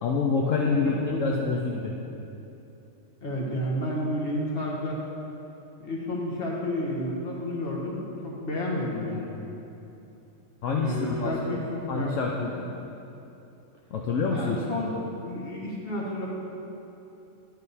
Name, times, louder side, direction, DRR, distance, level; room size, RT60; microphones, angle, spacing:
voice 1, 0.0-2.0 10.6-12.7 13.9-14.6, left 4 dB, 70° left, -1 dB, 1.0 m, -27 dB
voice 2, 0.7-1.4 3.2-5.0 5.8-9.4 10.7-12.2 14.3-15.0 15.2-16.3, left 1 dB, 45° left, -4 dB, 1.6 m, -31 dB
11.0 x 6.5 x 4.1 m, 2.9 s
omnidirectional pair, 1.4 m